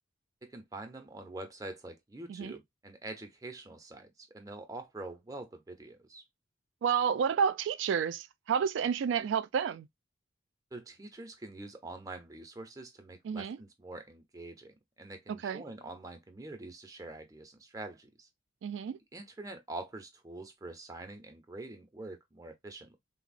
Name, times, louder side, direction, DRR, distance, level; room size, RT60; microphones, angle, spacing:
voice 1, 0.4-6.2 10.7-18.3 19.1-23.0, right 2 dB, 20° right, 0.5 m, -45 dB
voice 2, 6.8-9.9 13.2-13.6 15.3-15.6 18.6-19.0, right 7 dB, 85° right, 0.3 m, -30 dB
3.7 x 2.0 x 2.4 m
head